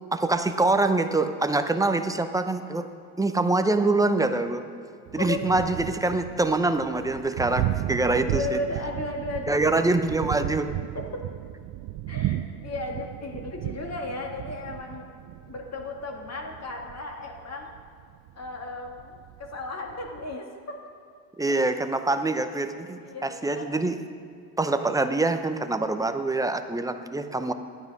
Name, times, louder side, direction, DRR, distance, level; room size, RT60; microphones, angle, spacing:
voice 1, 0.1-2.9 3.2-4.6 5.1-8.6 9.5-10.7 21.4-24.0 24.6-27.5, right 2 dB, 5° right, 8 dB, 0.7 m, -25 dB
Thunder, 5.1-20.3, right 15 dB, 50° right, 0.5 m, -35 dB
voice 2, 8.1-9.6 10.9-11.0 12.1-15.1 15.5-17.7 18.4-20.8 23.0-23.7, left 3 dB, 30° left, 1 dB, 1.9 m, -35 dB
11.5 x 9.4 x 5.5 m, 2.3 s
supercardioid pair, 80°, 49 cm